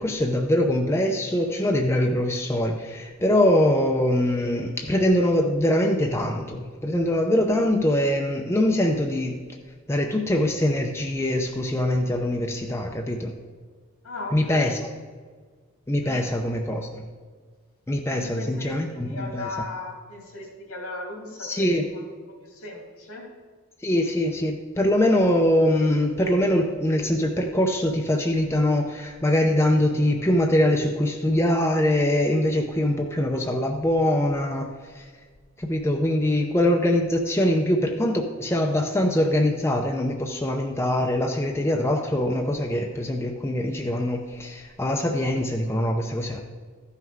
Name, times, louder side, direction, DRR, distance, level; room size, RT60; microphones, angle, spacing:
voice 1, 0.0-9.4 9.9-13.3 14.3-14.9 15.9-17.0 17.9-19.5 21.4-21.9 23.8-35.1 35.6-46.4, left 1 dB, 10° left, 2 dB, 0.5 m, -23 dB
voice 2, 14.0-14.8 16.0-16.3 18.1-22.0 22.4-23.2, left 2 dB, 75° left, 0 dB, 2.7 m, -37 dB
13.5 x 5.8 x 4.6 m, 1.5 s
head